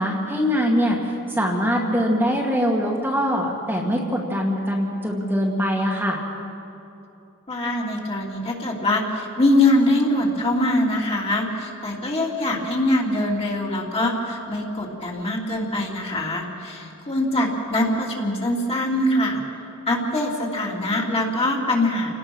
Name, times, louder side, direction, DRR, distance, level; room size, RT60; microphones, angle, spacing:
voice 1, 0.0-6.2, equal, 10° right, -2 dB, 2.1 m, -23 dB
voice 2, 7.5-19.4 19.9-22.1, left 1 dB, 25° left, -2 dB, 3.1 m, -23 dB
29.0 x 18.5 x 6.3 m, 2.8 s
head